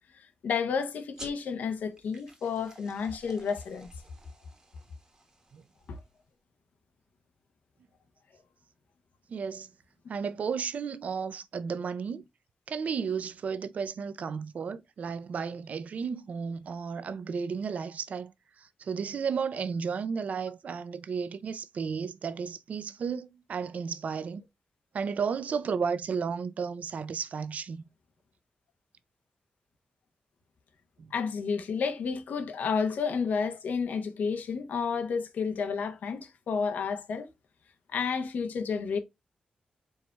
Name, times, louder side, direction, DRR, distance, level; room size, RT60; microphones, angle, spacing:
voice 1, 0.4-3.9 5.9-6.0 31.1-37.3 37.9-39.0, left 5 dB, 85° left, 0.8 m, -31 dB
sound 1, 1.1-6.2, right 2 dB, 25° right, 1.2 m, -52 dB
voice 2, 9.3-9.7 10.1-12.2 12.7-18.3 18.6-24.4 24.9-27.8 31.0-31.1, right 6 dB, 60° right, 0.5 m, -33 dB
4.6 x 4.1 x 2.2 m
wide cardioid pair, 145°, 3 cm